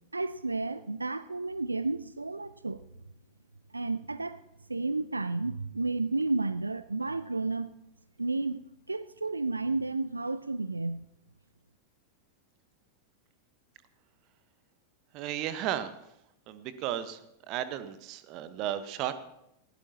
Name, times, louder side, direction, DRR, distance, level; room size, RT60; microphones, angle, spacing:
voice 1, 0.1-2.8 3.7-4.4 4.7-7.7 8.2-8.6 8.9-11.0, right 3 dB, 80° right, 14 dB, 0.4 m, -32 dB
voice 2, 15.1-15.9 16.5-17.2 17.5-19.1, right 11 dB, 40° right, 12 dB, 1.1 m, -34 dB
19.0 x 16.5 x 2.9 m, 0.82 s
figure-of-eight pair, 90°, 0 cm